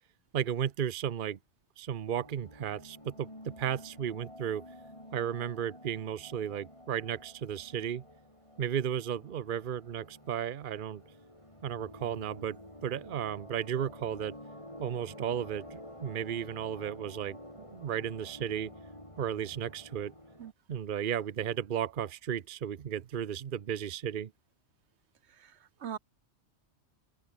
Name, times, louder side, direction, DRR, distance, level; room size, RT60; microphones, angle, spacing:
voice 1, 0.3-1.4 1.8-4.6 5.1-8.0 8.6-11.0 11.6-14.4 14.8-18.7 19.2-20.1 20.7-24.3, right 9 dB, 50° right, 0.9 m, -34 dB
sound 1, 2.1-20.5, left 1 dB, 25° left, 8.0 m, -50 dB
voice 2, 25.4-26.0, right 9 dB, 75° right, 1.1 m, -41 dB
omnidirectional pair, 1.2 m